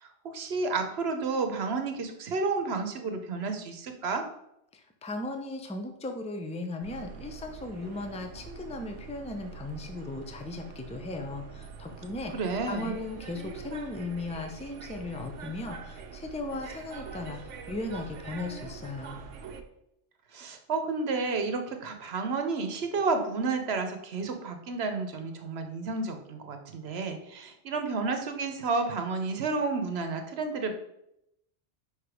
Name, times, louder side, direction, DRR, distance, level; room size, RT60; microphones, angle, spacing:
voice 1, 0.0-4.2 12.3-12.9 20.3-30.7, right 4 dB, 65° right, 6 dB, 1.1 m, -31 dB
voice 2, 4.7-19.2, left 2 dB, 10° left, 5 dB, 0.5 m, -37 dB
sound 1, 6.8-19.6, right 6 dB, 90° right, 1.0 m, -44 dB
5.1 x 5.0 x 4.9 m, 0.81 s
omnidirectional pair, 1.2 m